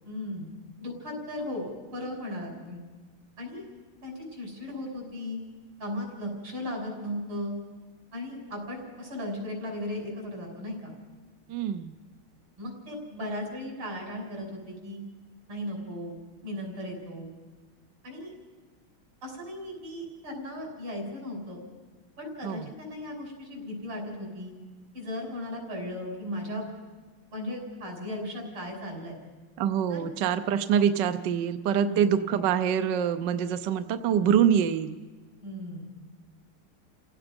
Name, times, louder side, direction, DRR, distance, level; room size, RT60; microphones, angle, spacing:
voice 1, 0.0-0.5 0.8-2.8 3.4-3.7 4.0-5.4 5.8-7.5 8.1-10.9 12.6-15.0 15.5-17.3 18.0-18.3 19.2-21.6 22.2-24.5 24.9-26.7 27.3-29.2 29.9-30.1 31.8-32.1 35.4-35.8, left 1 dB, 90° right, -1 dB, 6.5 m, -36 dB
voice 2, 11.5-11.9 22.4-22.7 29.6-35.0, right 8 dB, 65° right, 9 dB, 1.3 m, -25 dB
30.0 x 17.0 x 5.2 m, 1.4 s
omnidirectional pair, 2.3 m